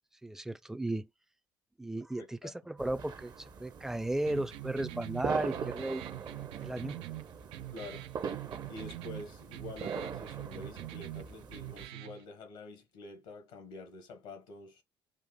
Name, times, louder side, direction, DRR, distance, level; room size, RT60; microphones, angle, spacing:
voice 1, 0.2-1.1 1.8-3.3 3.6-6.0 6.6-7.0, right 1 dB, 5° right, 0.5 m, -35 dB
voice 2, 2.2-2.5 7.7-8.1 8.7-14.8, left 3 dB, 80° left, 1.1 m, -47 dB
sound 1, 2.8-11.9, right 6 dB, 45° right, 0.7 m, -42 dB
sound 2, 4.3-12.2, right 16 dB, 75° right, 0.3 m, -44 dB
6.5 x 2.5 x 2.2 m
hypercardioid pair, 60°, 10 cm